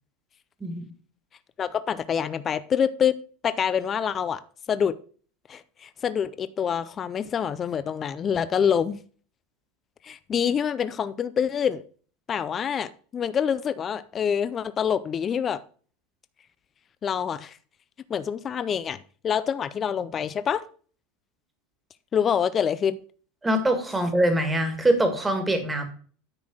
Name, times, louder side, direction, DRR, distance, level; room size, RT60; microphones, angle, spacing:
voice 1, 1.6-3.2 3.4-4.4 4.7-5.0 5.5-9.0 10.0-11.8 12.3-15.6 17.0-17.6 18.1-19.0 19.2-20.6 22.1-23.0, left 8 dB, 25° left, 0.4 m, -26 dB
voice 2, 23.4-25.8, right 1 dB, 10° right, 1.7 m, -23 dB
9.5 x 4.2 x 6.1 m
supercardioid pair, 145°, 0 cm